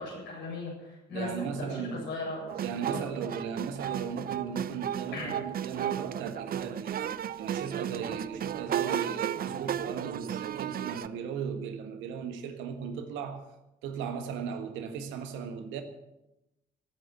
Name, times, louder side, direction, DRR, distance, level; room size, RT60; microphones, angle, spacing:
voice 1, 0.0-2.6 2.9-3.0 5.1-5.3, left 2 dB, 70° left, 7.8 m, -37 dB
voice 2, 1.1-2.1 2.6-13.5 13.8-15.8, right 6 dB, 70° right, 1.6 m, -37 dB
sound 1, 2.5-11.1, right 9 dB, 45° right, 0.6 m, -34 dB
16.0 x 9.0 x 8.0 m
hypercardioid pair, 45°, 20 cm